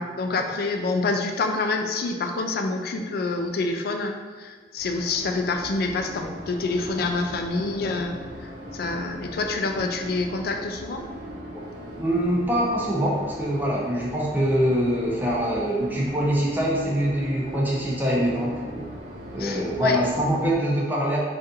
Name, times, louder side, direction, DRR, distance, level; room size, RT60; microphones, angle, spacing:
voice 1, 0.0-11.0 19.4-20.0, left 3 dB, 60° left, 4 dB, 0.3 m, -27 dB
sound 1, 4.8-20.5, equal, 55° right, 0.5 m, -40 dB
voice 2, 12.0-18.8 19.3-21.2, equal, 10° right, -4 dB, 0.5 m, -24 dB
3.9 x 2.5 x 2.6 m, 1.5 s
head